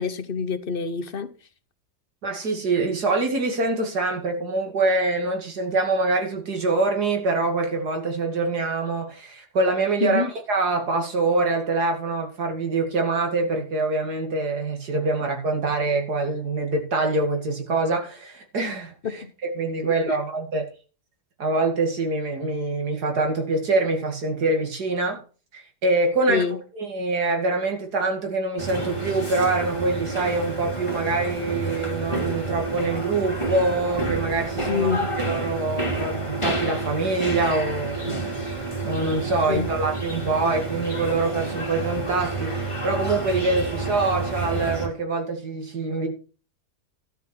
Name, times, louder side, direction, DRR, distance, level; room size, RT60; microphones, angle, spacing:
voice 1, 0.0-1.3 10.0-10.3 19.0-19.3 19.8-20.2 26.3-26.6 34.7-35.1 39.5-39.7, left 6 dB, 45° left, 0.8 m, -26 dB
voice 2, 2.2-19.2 19.5-20.7 21.4-25.2 25.5-26.5 26.8-34.9 35.3-46.1, right 3 dB, 75° right, 2.8 m, -25 dB
sound 1, 28.6-44.9, right 2 dB, 20° left, 3.0 m, -29 dB
13.0 x 6.0 x 7.0 m
omnidirectional pair, 1.7 m